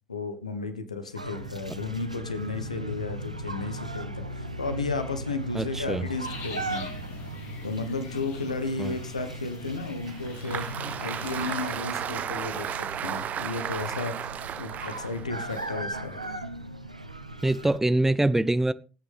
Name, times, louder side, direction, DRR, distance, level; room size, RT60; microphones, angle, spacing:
voice 1, 0.1-6.9 7.6-10.7 11.0-14.2 14.5-16.2, left 3 dB, 85° left, 1.2 m, -33 dB
sound 1, 1.1-17.8, right 1 dB, 90° right, 0.7 m, -38 dB
voice 2, 5.5-6.1 8.8-9.0 17.4-18.7, right 2 dB, 10° right, 0.7 m, -24 dB
sound 2, 6.2-11.5, left 3 dB, 60° left, 2.8 m, -44 dB
Applause, 10.1-16.4, right 9 dB, 45° right, 0.8 m, -35 dB
19.5 x 9.3 x 3.5 m
figure-of-eight pair, 55°, 4 cm